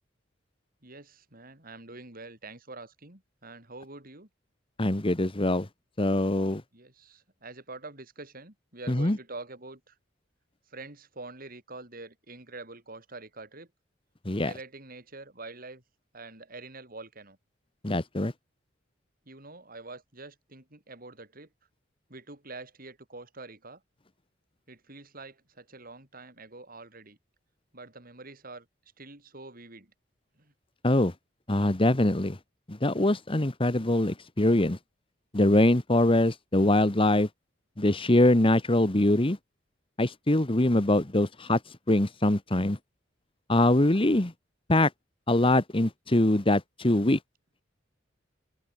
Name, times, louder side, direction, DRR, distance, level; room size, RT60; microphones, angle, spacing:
voice 1, 0.8-4.3 6.7-10.0 10.7-13.7 14.4-15.8 16.1-17.4 19.3-21.5 22.1-23.8 24.7-27.2 27.7-28.7 29.0-29.9 30.3-30.5, right 3 dB, 50° right, 5.9 m, -45 dB
voice 2, 4.8-5.7 6.0-6.6 8.9-9.2 14.2-14.5 17.8-18.3 30.8-31.1 31.5-32.4 32.7-34.8 35.3-37.3 37.8-39.4 40.0-41.6 41.9-42.8 43.5-44.3 44.7-44.9 45.3-47.2, left 1 dB, 30° left, 1.3 m, -23 dB
head